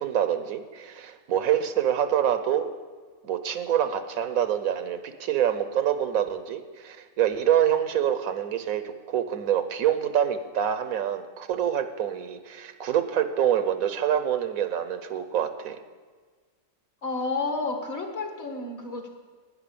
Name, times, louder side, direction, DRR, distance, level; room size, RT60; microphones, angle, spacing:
voice 1, 0.0-2.7 3.2-15.8, right 10 dB, 85° right, 10 dB, 1.3 m, -26 dB
voice 2, 17.0-19.1, left 3 dB, 55° left, 3 dB, 1.9 m, -30 dB
11.5 x 9.7 x 6.8 m, 1.5 s
omnidirectional pair, 1.4 m